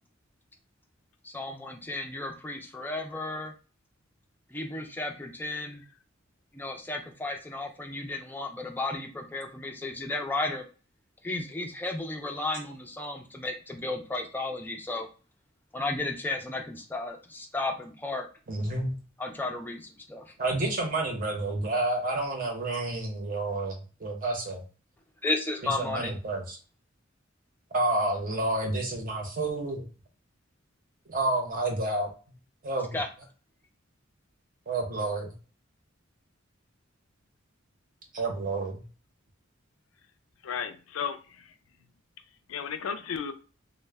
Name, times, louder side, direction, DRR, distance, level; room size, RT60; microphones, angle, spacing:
voice 1, 1.2-3.5 4.5-5.8 6.5-10.6 11.2-15.1 15.7-18.3 19.2-20.3 25.2-26.1 32.9-33.1, left 2 dB, 10° left, 3 dB, 0.3 m, -33 dB
voice 2, 18.5-18.9 20.4-24.6 25.6-26.6 27.7-29.8 31.1-32.1 32.6-33.0 34.7-35.3 38.1-38.8, right 2 dB, 45° right, 2 dB, 0.7 m, -29 dB
voice 3, 40.4-41.5 42.5-43.3, left 7 dB, 90° left, 9 dB, 0.4 m, -34 dB
2.1 x 2.0 x 3.3 m, 0.36 s
head